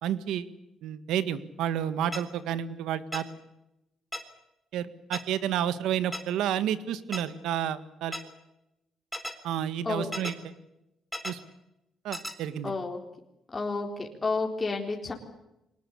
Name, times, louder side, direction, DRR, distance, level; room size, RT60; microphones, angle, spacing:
voice 1, 0.0-0.5 0.8-3.2 4.7-8.2 9.4-10.3 11.2-11.4 12.0-12.7, right 10 dB, 85° right, 13 dB, 1.7 m, -30 dB
sound 1, 2.1-2.2 3.1-3.2 4.1-4.2 5.1-5.2 6.1-6.2 7.1-7.2 8.1-8.2 9.1-9.3 10.1-10.3 11.1-11.3 12.1-12.3, left 1 dB, ahead, 3.9 m, -34 dB
voice 2, 12.6-13.0 13.5-15.1, left 3 dB, 25° left, 1 dB, 4.0 m, -30 dB
24.0 x 19.5 x 8.4 m, 0.89 s
cardioid pair, 90°, 0 cm